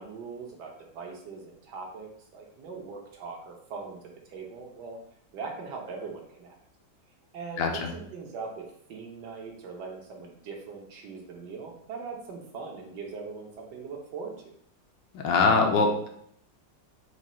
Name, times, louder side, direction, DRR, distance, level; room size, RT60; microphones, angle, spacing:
voice 1, 0.0-5.0 5.3-6.6 7.3-14.5, right 4 dB, 70° right, 1 dB, 1.4 m, -41 dB
voice 2, 7.6-7.9 15.1-16.1, left 4 dB, 85° left, 3 dB, 1.4 m, -23 dB
5.0 x 2.3 x 4.1 m, 0.68 s
omnidirectional pair, 2.0 m